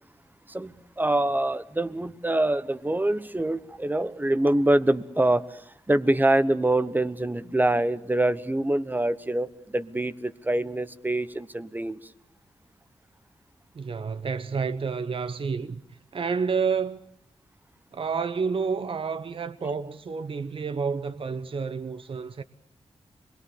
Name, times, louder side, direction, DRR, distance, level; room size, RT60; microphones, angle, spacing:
voice 1, 0.5-12.0, right 1 dB, 15° right, 1.1 m, -25 dB
voice 2, 13.7-15.8 16.1-17.0 17.9-22.4, right 5 dB, 55° right, 1.0 m, -29 dB
26.0 x 21.5 x 8.5 m
wide cardioid pair, 95°, 11 cm